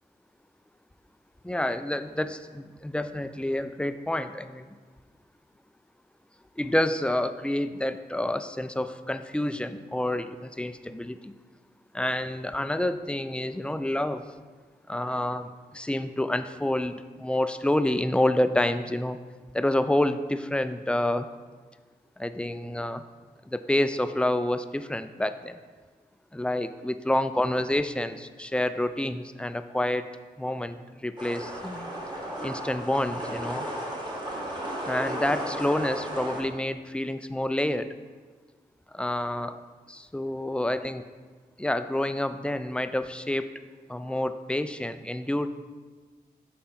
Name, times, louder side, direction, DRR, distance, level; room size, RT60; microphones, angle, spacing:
voice 1, 1.4-4.7 6.6-11.3 11.9-14.2 14.9-19.2 19.5-21.3 22.2-23.0 23.4-25.6 26.3-30.1 30.4-31.9 32.4-33.7 34.9-37.9 38.9-39.6 39.9-41.0 41.6-43.5 43.9-45.5, left 1 dB, 5° left, 11 dB, 0.3 m, -28 dB
sound 1, 31.2-36.4, right 1 dB, 25° right, 1.5 m, -34 dB
6.9 x 4.3 x 3.8 m, 1.4 s
cardioid pair, 45°, 18 cm